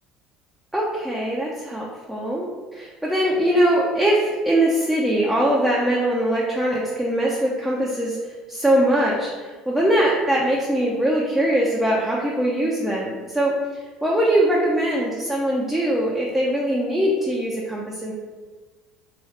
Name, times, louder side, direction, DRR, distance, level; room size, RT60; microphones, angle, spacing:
voice 1, 0.7-18.1, right 1 dB, 5° right, -5 dB, 0.5 m, -22 dB
2.8 x 2.3 x 3.2 m, 1.3 s
hypercardioid pair, 75°, 3 cm